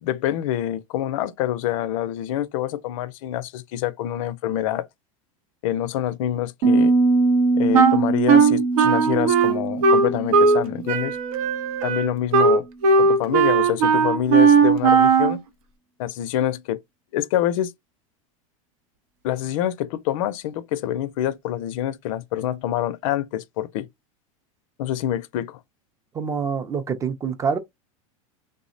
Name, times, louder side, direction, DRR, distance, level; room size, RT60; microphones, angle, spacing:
voice 1, 0.0-4.9 5.6-6.9 7.5-11.2 11.8-12.6 13.0-15.4 16.0-16.8 17.1-17.7 19.2-23.9 24.8-25.6, left 12 dB, 65° left, 0.4 m, -26 dB
Piano, 6.6-12.2, right 3 dB, 50° right, 0.8 m, -23 dB
Wind instrument woodwind instrument, 7.7-10.6 10.9-15.4, right 5 dB, 80° right, 0.7 m, -17 dB
voice 2, 26.1-27.6, right 6 dB, 15° right, 0.4 m, -26 dB
3.4 x 2.0 x 2.5 m
supercardioid pair, 135°, 18 cm